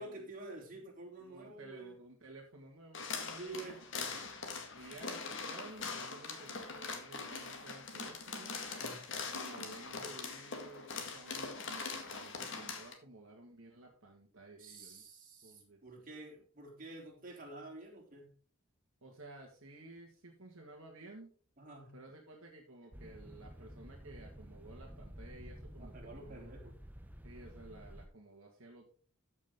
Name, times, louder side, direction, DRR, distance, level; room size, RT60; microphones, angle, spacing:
voice 1, 0.0-1.9 3.4-3.8 8.7-9.1 14.6-18.3 21.6-22.0 25.8-26.8, right 2 dB, 40° right, -2 dB, 3.5 m, -49 dB
voice 2, 1.2-3.7 3.9-4.1 4.8-8.6 9.3-15.0 15.4-15.8 19.0-21.3 21.9-26.5 27.2-28.9, right 2 dB, 65° right, 0 dB, 1.9 m, -54 dB
sound 1, 2.9-12.9, left 4 dB, 55° left, 1.9 m, -42 dB
sound 2, 22.9-28.1, equal, 10° right, 0.7 m, -51 dB
13.5 x 6.4 x 3.8 m, 0.42 s
head